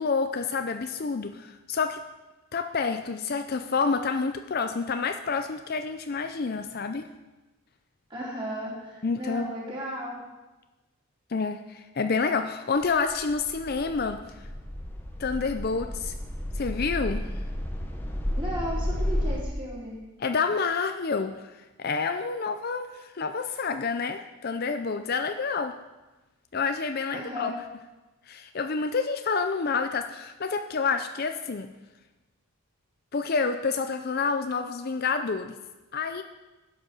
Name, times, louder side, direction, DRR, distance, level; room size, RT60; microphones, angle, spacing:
voice 1, 0.0-2.0 2.5-7.1 9.0-9.5 11.3-14.2 15.2-16.1 16.5-17.3 20.2-25.8 26.5-27.5 28.3-31.7 33.1-35.5 35.9-36.2, left 4 dB, 45° left, 8 dB, 0.5 m, -28 dB
voice 2, 8.1-10.2 18.3-20.0 27.1-27.6, equal, 20° right, -6 dB, 3.7 m, -35 dB
sound 1, 12.8-19.4, left 1 dB, 10° left, 0.9 m, -32 dB
11.0 x 8.0 x 6.0 m, 1.1 s
head